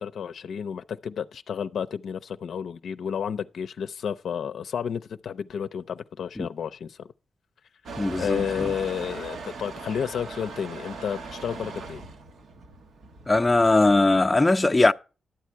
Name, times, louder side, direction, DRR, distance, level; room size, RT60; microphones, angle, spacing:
voice 1, 0.0-7.1 8.2-12.0, left 7 dB, 75° left, 0.5 m, -31 dB
Motor vehicle (road) / Engine starting / Accelerating revving vroom, 7.9-13.7, right 4 dB, 80° right, 1.3 m, -39 dB
voice 2, 8.0-8.7 13.3-14.9, left 2 dB, 15° left, 0.5 m, -20 dB
12.0 x 8.3 x 4.5 m
cardioid pair, 80°, 0 cm